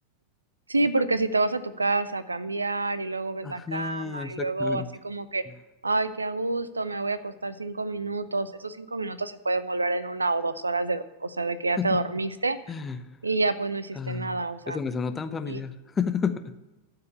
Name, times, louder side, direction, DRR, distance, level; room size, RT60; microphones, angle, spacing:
voice 1, 0.7-5.4 5.8-12.6 13.2-14.8 15.5-15.6, right 3 dB, 80° right, 14 dB, 0.6 m, -28 dB
voice 2, 3.4-4.9 11.8-12.0 12.7-13.2 14.0-14.4 14.7-16.5, left 6 dB, 20° left, 10 dB, 0.6 m, -31 dB
13.0 x 4.9 x 8.1 m, 1.1 s
figure-of-eight pair, 90°, 0 cm